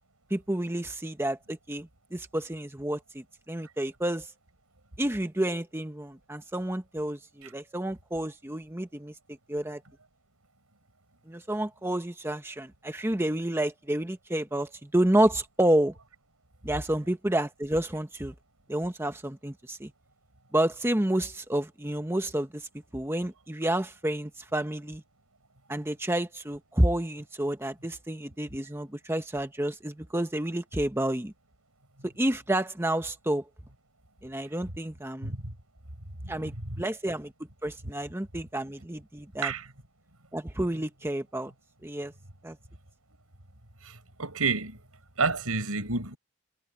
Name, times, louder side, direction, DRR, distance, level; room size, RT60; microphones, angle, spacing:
voice 1, 0.3-4.3 5.0-9.1 9.5-9.8 11.3-15.9 16.6-18.3 18.7-19.9 20.5-22.7 22.9-25.0 25.7-31.3 32.0-33.5 34.2-35.3 36.3-37.3 37.6-39.5 40.3-41.5 41.8-42.1 42.4-42.6, right 1 dB, 10° right, 0.9 m, -29 dB
voice 2, 35.2-35.5 36.2-36.3 39.4-39.6 44.2-44.8 45.2-46.2, right 4 dB, 80° right, 4.6 m, -29 dB
head